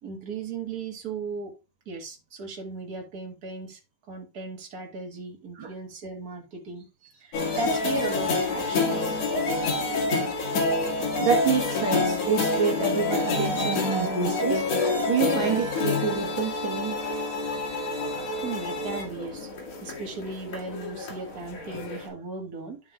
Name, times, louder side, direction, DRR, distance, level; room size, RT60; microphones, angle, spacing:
voice 1, 0.0-1.5 1.8-3.8 4.1-9.2 18.4-19.5 19.8-22.9, right 3 dB, 40° right, 1.3 m, -36 dB
sound 1, 7.3-22.1, left 3 dB, 55° left, 2.6 m, -27 dB
voice 2, 11.2-14.7 15.1-17.0, right 6 dB, 85° right, 1.1 m, -27 dB
12.0 x 5.4 x 2.3 m
omnidirectional pair, 4.0 m